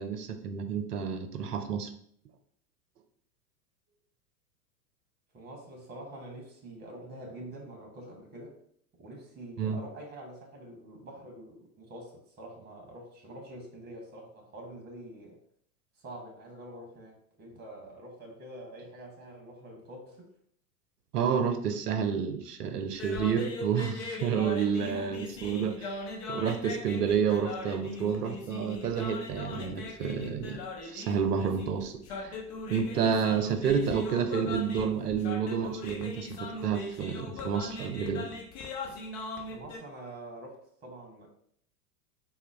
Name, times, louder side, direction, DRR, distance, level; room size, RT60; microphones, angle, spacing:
voice 1, 0.0-1.9 9.6-9.8 21.1-26.0 26.3-32.4 32.7-38.3, right 7 dB, 75° right, 8 dB, 0.7 m, -30 dB
voice 2, 5.3-8.5 9.0-15.4 16.0-20.3 24.9-25.7 39.4-41.3, right 1 dB, 20° right, 2 dB, 1.1 m, -46 dB
sound 1, 22.9-39.8, left 3 dB, 40° left, 0.7 m, -40 dB
3.8 x 2.2 x 3.4 m, 0.64 s
figure-of-eight pair, 95°, 48 cm